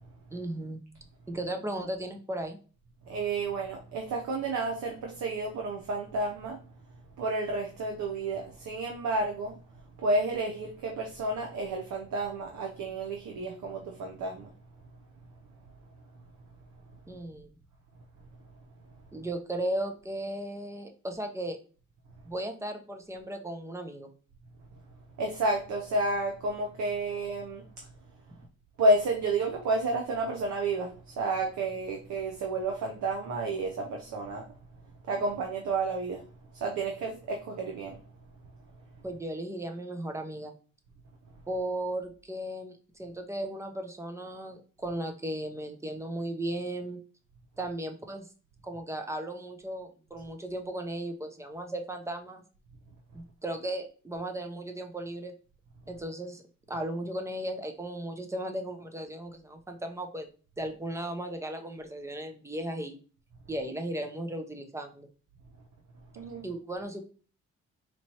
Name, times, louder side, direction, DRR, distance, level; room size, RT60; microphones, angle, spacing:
voice 1, 0.3-0.8 1.3-2.6 17.1-17.6 19.1-21.6 22.3-24.1 39.0-40.5 41.5-47.0 47.6-48.3 48.6-52.4 53.1-55.3 55.9-56.4 56.7-60.3 60.6-63.0 63.5-65.1 66.4-67.0, right 1 dB, 10° right, 0.6 m, -36 dB
voice 2, 3.1-6.6 7.2-9.6 10.0-14.5 25.2-27.9 28.8-34.5 35.1-36.2 36.5-38.0 66.1-66.4, right 2 dB, 70° right, 0.7 m, -31 dB
4.2 x 3.1 x 2.8 m
cardioid pair, 90°, 30 cm